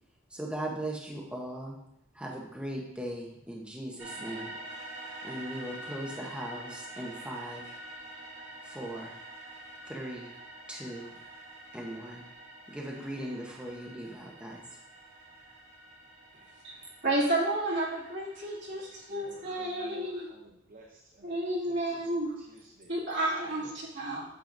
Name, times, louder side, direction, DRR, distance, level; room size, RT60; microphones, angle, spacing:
voice 1, 0.3-1.8 2.1-4.5 5.2-7.8 8.6-9.2 9.9-10.3 10.7-11.1 11.7-12.3 12.7-14.6, right 1 dB, 5° right, -2 dB, 0.8 m, -39 dB
sound 1, 4.0-19.9, right 1 dB, 85° right, 2.3 m, -47 dB
voice 2, 17.0-20.3 21.2-22.4 22.9-23.6 24.0-24.3, right 1 dB, 65° right, -6 dB, 2.4 m, -31 dB
voice 3, 18.7-21.3 21.7-22.9, right 2 dB, 45° right, 1 dB, 0.8 m, -54 dB
8.9 x 6.6 x 2.6 m, 0.81 s
head